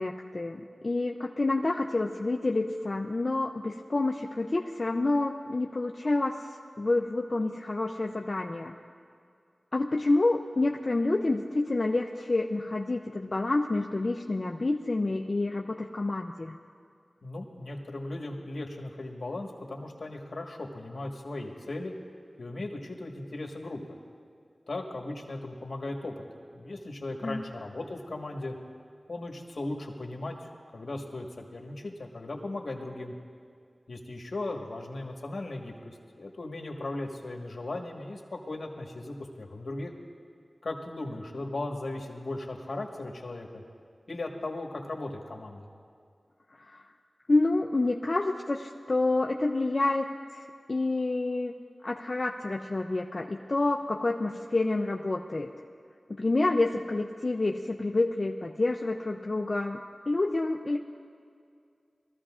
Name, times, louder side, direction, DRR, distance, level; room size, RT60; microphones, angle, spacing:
voice 1, 0.0-6.4 6.8-8.7 9.7-16.6 27.2-27.4 46.6-46.8 47.3-50.4 50.7-51.5 51.8-55.5 56.2-59.8 60.1-60.8, left 2 dB, 50° left, 2 dB, 0.5 m, -28 dB
voice 2, 17.2-21.9 22.4-24.0 24.7-26.2 26.5-28.5 29.1-33.1 33.9-39.9 40.6-43.6 44.1-45.7, left 2 dB, 75° left, 1 dB, 1.5 m, -37 dB
21.5 x 14.5 x 2.5 m, 2.3 s
wide cardioid pair, 55°, 0 cm